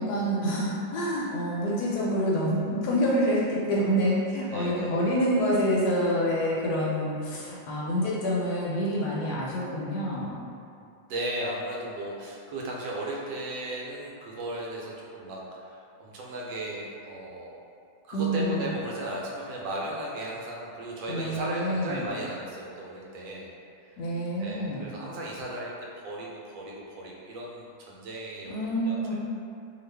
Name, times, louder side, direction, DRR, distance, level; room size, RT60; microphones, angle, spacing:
voice 1, 0.0-10.4 18.1-18.7 21.1-22.1 24.0-24.9 28.5-29.1, equal, 75° left, -5 dB, 1.0 m, -27 dB
voice 2, 4.5-5.0 10.8-17.6 18.1-23.5 23.9-24.0 24.4-25.7 26.0-28.5 28.8-29.1, right 1 dB, 85° right, -4 dB, 1.3 m, -36 dB
2.9 x 2.3 x 3.2 m, 2.5 s
omnidirectional pair, 2.0 m